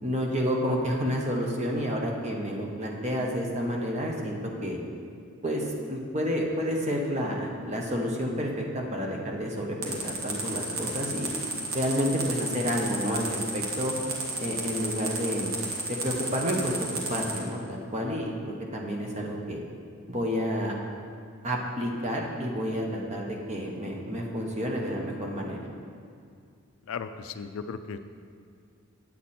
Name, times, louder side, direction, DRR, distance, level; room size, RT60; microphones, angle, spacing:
voice 1, 0.0-4.8 5.4-11.3 11.7-13.9 14.4-15.5 15.9-16.8 17.1-19.6 20.1-20.8 21.4-25.6, equal, 30° right, -1 dB, 1.0 m, -30 dB
sound 1, 9.8-17.4, right 3 dB, 85° right, 1.6 m, -32 dB
voice 2, 26.9-28.0, left 5 dB, 75° left, 10 dB, 0.4 m, -36 dB
8.5 x 8.3 x 4.3 m, 2.3 s
head